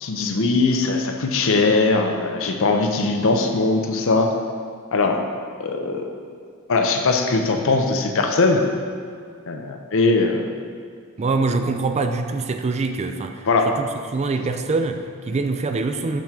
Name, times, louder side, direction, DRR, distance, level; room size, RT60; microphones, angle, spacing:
voice 1, 0.0-4.3 4.9-5.2 5.6-6.1 6.7-8.6 9.5-10.5 13.5-13.7, left 3 dB, 65° left, 4 dB, 0.6 m, -20 dB
voice 2, 11.2-16.2, right 3 dB, 30° right, 7 dB, 0.4 m, -24 dB
7.4 x 3.7 x 5.7 m, 2.2 s
head